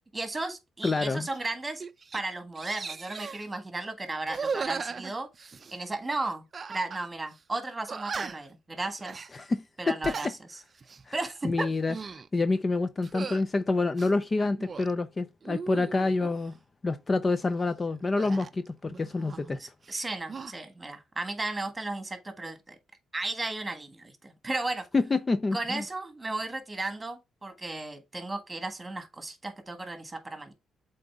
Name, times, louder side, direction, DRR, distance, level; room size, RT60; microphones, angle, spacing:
voice 1, 0.1-1.9 2.1-5.3 5.7-9.3 9.8-10.3 11.1-11.7 19.6-22.7 23.1-24.8 25.5-30.5, right 2 dB, 20° right, 1.6 m, -35 dB
voice 2, 0.8-1.3 9.3-10.1 11.4-12.0 12.3-16.6 16.8-19.6 24.9-25.8, left 3 dB, 30° left, 0.5 m, -27 dB
sound 1, 1.3-1.5 1.8-2.2 2.6-3.4 4.2-5.8 6.5-7.0 7.3-7.4 7.9-8.5 9.0-9.3 9.9-10.3 10.8-11.1 11.7-12.3 13.0-13.4 13.9-14.9 15.4-16.4 18.2-19.6 19.8-20.5, right 5 dB, 35° right, 0.5 m, -38 dB
7.6 x 4.0 x 3.6 m
cardioid pair, 90°, 0 cm